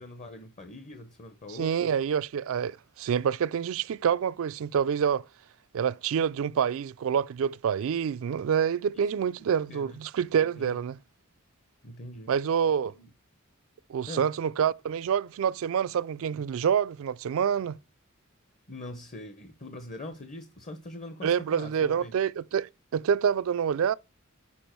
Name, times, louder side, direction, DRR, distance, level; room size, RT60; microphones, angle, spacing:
voice 1, 0.0-1.9 8.9-10.0 10.6-10.8 11.8-12.3 12.9-13.1 14.1-14.3 18.7-22.1, left 1 dB, 35° left, 0.8 m, -43 dB
voice 2, 1.5-5.2 5.7-11.0 12.3-12.9 13.9-17.8 21.2-23.9, right 7 dB, 70° right, 0.3 m, -27 dB
7.1 x 4.7 x 4.4 m
head